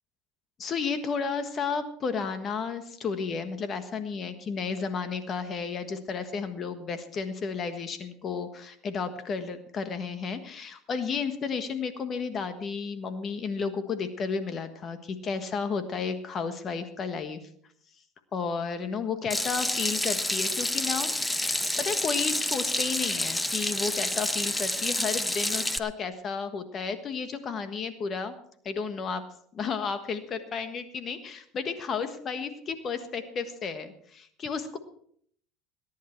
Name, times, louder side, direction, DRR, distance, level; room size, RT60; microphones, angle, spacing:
voice 1, 0.6-17.4 18.3-28.3 28.6-29.2 29.5-34.8, left 5 dB, 40° left, 10 dB, 1.4 m, -32 dB
Water tap faucet / Sink (filling or washing), 19.3-25.8, left 1 dB, 10° left, 0.8 m, -29 dB
19.0 x 10.5 x 4.6 m, 0.63 s
supercardioid pair, 100°, 0 cm